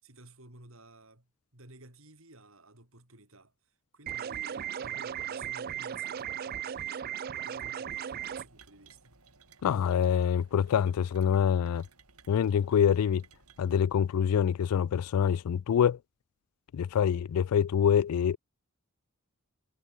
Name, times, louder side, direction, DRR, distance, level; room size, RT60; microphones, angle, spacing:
voice 1, 0.0-9.2, right 2 dB, 65° right, 5.4 m, -54 dB
sound 1, 4.1-8.4, right 9 dB, 45° right, 0.4 m, -36 dB
sound 2, 8.2-13.8, right 4 dB, 85° right, 6.8 m, -60 dB
voice 2, 9.6-11.8 12.3-13.2 13.6-16.0 16.7-18.4, left 8 dB, 85° left, 0.3 m, -25 dB
head